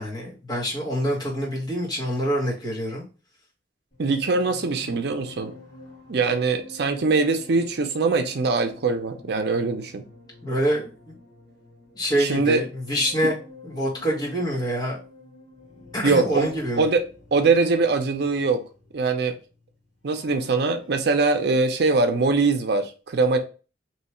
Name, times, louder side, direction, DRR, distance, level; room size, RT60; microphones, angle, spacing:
voice 1, 0.0-3.0 10.4-11.1 12.0-13.3 13.6-15.0 15.9-16.9, equal, 25° left, 1.5 m, -26 dB
sound 1, 3.9-20.6 20.8-21.1, left 2 dB, 45° left, 1.4 m, -48 dB
voice 2, 4.0-5.5 6.1-10.0 12.2-12.6 16.0-16.5 16.8-17.0 17.3-18.6 18.9-19.3 20.0-23.4, right 3 dB, 65° right, 0.5 m, -22 dB
3.1 x 2.8 x 4.3 m
head